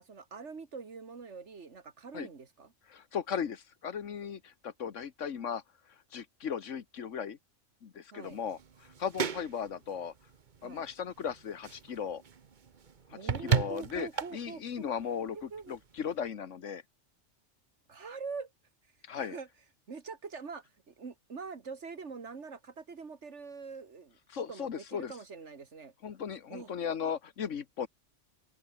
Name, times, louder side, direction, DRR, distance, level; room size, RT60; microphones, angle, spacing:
voice 1, 0.0-2.7 8.1-8.4 10.6-10.8 13.1-14.8 15.3-15.8 17.9-18.5 19.2-19.5 19.9-25.9 26.5-26.7, right 5 dB, 70° right, 2.2 m, -44 dB
voice 2, 2.9-5.6 6.1-7.4 7.8-10.1 10.6-12.2 13.1-16.8 19.0-19.4 24.3-25.1 26.0-27.9, left 7 dB, 85° left, 1.6 m, -37 dB
sound 1, 8.2-16.3, right 6 dB, 45° right, 1.0 m, -37 dB
open air
omnidirectional pair, 1.2 m